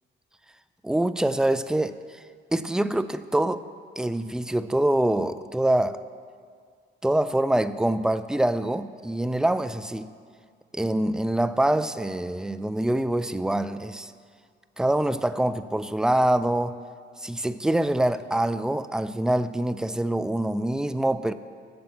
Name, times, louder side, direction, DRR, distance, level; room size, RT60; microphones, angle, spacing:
voice 1, 0.8-2.2 2.5-3.6 4.0-6.0 7.0-10.1 10.7-14.1 14.8-16.8 17.2-21.3, right 1 dB, 5° right, 13 dB, 0.3 m, -25 dB
8.7 x 7.1 x 7.1 m, 2.1 s
cardioid pair, 90°, 20 cm